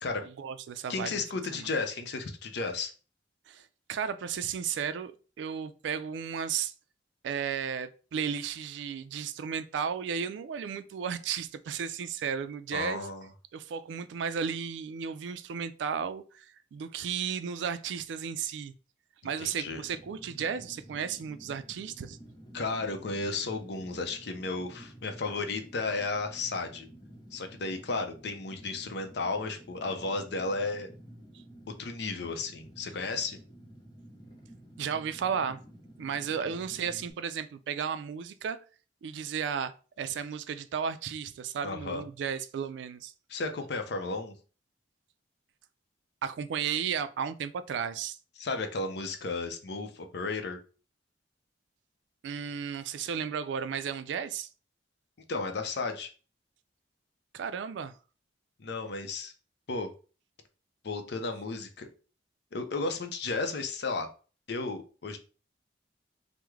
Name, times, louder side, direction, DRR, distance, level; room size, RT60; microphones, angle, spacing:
voice 1, 0.2-1.2 1.5-1.7 3.5-3.6 3.9-6.7 7.2-13.1 13.5-18.7 19.2-22.2 34.8-35.6 36.0-38.6 39.0-43.1 46.2-48.2 52.2-54.5 57.3-58.0, right 7 dB, 75° right, 0.3 m, -34 dB
voice 2, 0.9-2.9 12.7-13.3 19.4-19.8 22.5-26.9 27.3-30.9 31.8-33.4 41.6-42.0 43.3-44.3 48.4-50.6 55.3-56.1 58.6-59.3 59.7-59.9 60.8-61.9 62.5-64.1 64.5-65.2, left 3 dB, 60° left, 0.5 m, -33 dB
Fire, 19.7-37.1, right 1 dB, 25° left, 0.8 m, -52 dB
3.5 x 2.1 x 3.1 m
head